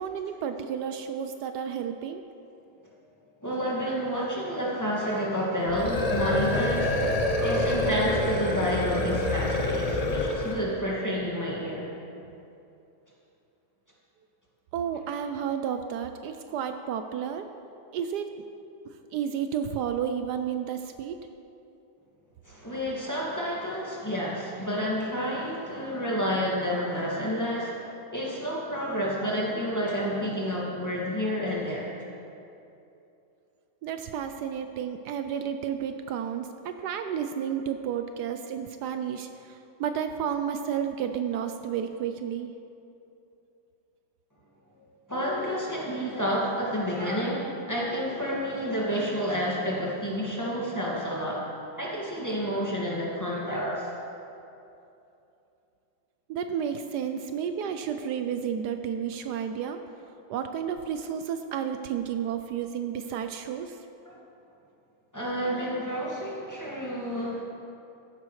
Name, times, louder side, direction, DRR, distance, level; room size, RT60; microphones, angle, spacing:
voice 1, 0.0-2.2 14.7-17.5 17.9-18.4 19.1-21.2 33.8-42.5 56.3-59.8 60.3-63.8, right 8 dB, 75° right, 8 dB, 1.1 m, -31 dB
voice 2, 3.4-11.9 22.4-31.9 44.6-44.8 45.1-51.5 51.8-53.9 64.1-64.2 65.1-67.4, equal, 10° left, -6 dB, 1.9 m, -30 dB
sound 1, 5.7-10.7, left 2 dB, 50° left, 0.4 m, -27 dB
14.5 x 11.0 x 3.2 m, 2.7 s
omnidirectional pair, 1.8 m